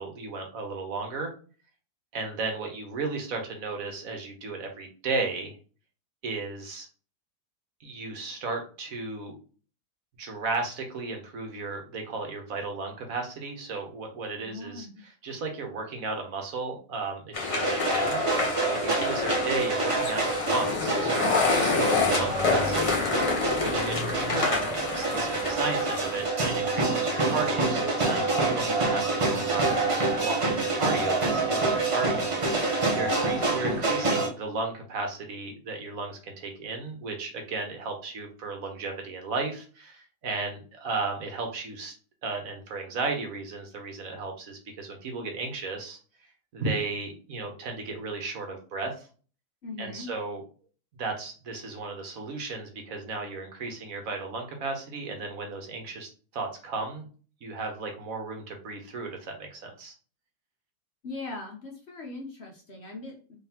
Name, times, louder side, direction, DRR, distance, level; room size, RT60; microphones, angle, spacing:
voice 1, 0.0-1.3 2.1-5.5 6.2-6.9 7.8-9.4 10.2-18.2 18.8-23.0 23.6-29.9 30.2-41.9 42.2-46.0 46.5-49.1 49.8-50.4 51.0-57.1 57.4-59.9, right 3 dB, 65° right, 3 dB, 1.3 m, -34 dB
voice 2, 14.4-15.0 33.0-33.7 49.6-50.1 61.0-63.4, left 2 dB, 50° left, 1 dB, 0.9 m, -40 dB
sound 1, 17.3-26.3, left 4 dB, 30° left, 0.6 m, -28 dB
sound 2, 17.5-34.3, right 3 dB, 35° right, 0.5 m, -27 dB
3.8 x 3.6 x 2.8 m, 0.39 s
omnidirectional pair, 1.7 m